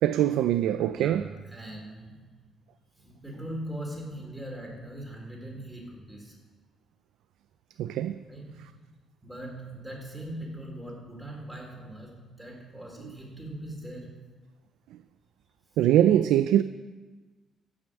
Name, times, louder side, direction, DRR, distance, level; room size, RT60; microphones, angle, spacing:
voice 1, 0.0-1.3 7.8-8.2 13.0-13.1 15.8-16.6, right 12 dB, 90° right, 0.4 m, -23 dB
voice 2, 0.9-2.2 2.9-6.3 8.3-8.8 9.2-14.2, right 1 dB, 5° right, 4.3 m, -40 dB
15.5 x 6.3 x 7.6 m
cardioid pair, 90°, 0 cm